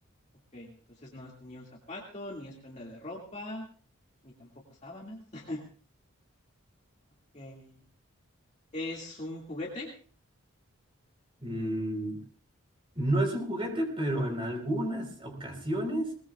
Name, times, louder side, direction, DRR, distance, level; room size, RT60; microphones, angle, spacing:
voice 1, 1.0-3.6 4.2-4.5 4.8-5.6 7.3-7.8 8.7-9.9, left 1 dB, 30° left, -2 dB, 2.1 m, -40 dB
voice 2, 11.4-12.2 12.9-16.1, right 1 dB, 25° right, 3 dB, 4.0 m, -31 dB
21.5 x 20.0 x 2.4 m, 0.43 s
head